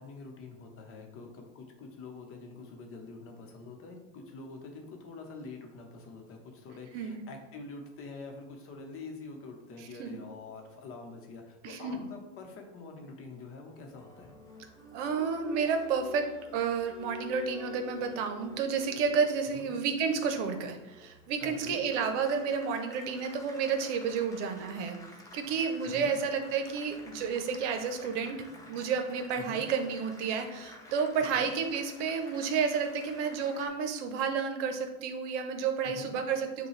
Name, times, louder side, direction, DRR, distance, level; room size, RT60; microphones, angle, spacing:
voice 1, 0.0-14.3 19.5-19.7 21.4-21.8 25.8-26.2 29.3-29.6 31.2-31.5 35.8-36.1, left 3 dB, 35° left, 3 dB, 0.9 m, -46 dB
voice 2, 11.6-12.0 14.9-16.2 16.5-25.0 25.3-36.7, right 6 dB, 70° right, 5 dB, 0.8 m, -31 dB
Applause, 13.7-33.7, left 4 dB, 10° left, 0.7 m, -50 dB
6.7 x 2.3 x 3.2 m, 1.0 s
supercardioid pair, 115°, 37 cm